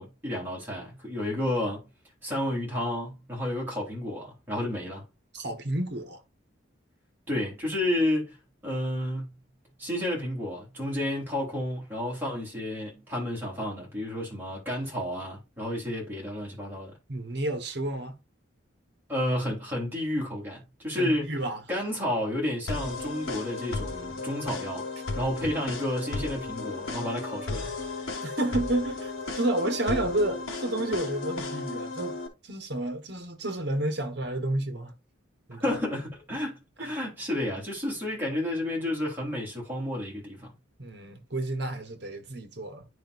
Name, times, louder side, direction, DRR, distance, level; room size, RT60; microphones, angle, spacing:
voice 1, 0.0-1.9 2.2-5.0 7.3-8.3 8.6-9.3 9.8-16.9 19.1-21.3 21.7-24.8 25.2-27.7 35.6-40.5, left 1 dB, 10° right, 3.4 m, -31 dB
voice 2, 5.3-6.2 17.1-18.2 20.9-21.6 28.2-32.2 32.4-34.9 35.5-35.8 36.8-36.9 40.8-42.8, right 1 dB, 55° right, 1.3 m, -30 dB
sound 1, 22.7-32.3, left 3 dB, 80° left, 1.9 m, -35 dB
10.0 x 5.0 x 2.6 m
head